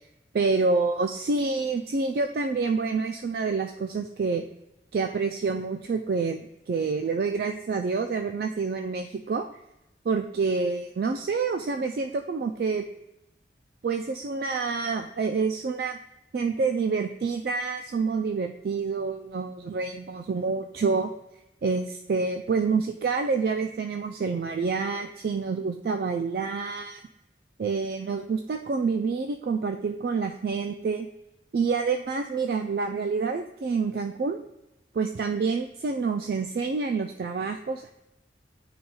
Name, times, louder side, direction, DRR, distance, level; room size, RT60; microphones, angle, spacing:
voice 1, 0.3-4.4 4.9-9.5 10.1-12.8 13.8-16.0 16.3-21.1 21.6-27.0 27.6-31.1 31.5-34.4 34.9-37.9, right 4 dB, 55° right, 5 dB, 0.3 m, -27 dB
11.0 x 4.0 x 2.3 m, 0.90 s
head